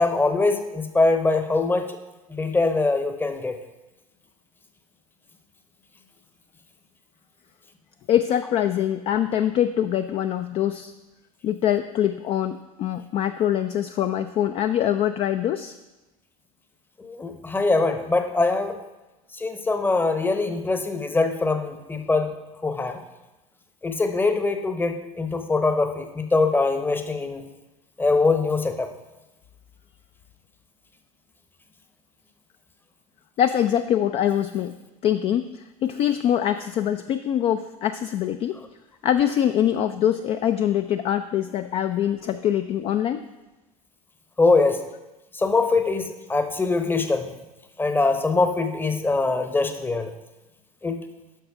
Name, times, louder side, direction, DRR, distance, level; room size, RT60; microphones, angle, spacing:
voice 1, 0.0-2.0 2.3-3.6 17.0-18.8 19.3-22.3 22.6-23.0 23.8-27.4 28.0-28.9 44.4-44.8 45.3-47.3 47.8-50.1 50.8-51.0, left 3 dB, 10° left, 7 dB, 0.8 m, -23 dB
voice 2, 8.1-10.9 11.4-15.8 33.4-34.7 35.0-38.6 39.0-43.2, left 10 dB, 30° left, 10 dB, 0.4 m, -24 dB
10.0 x 6.3 x 3.6 m, 1.0 s
figure-of-eight pair, 75°, 19 cm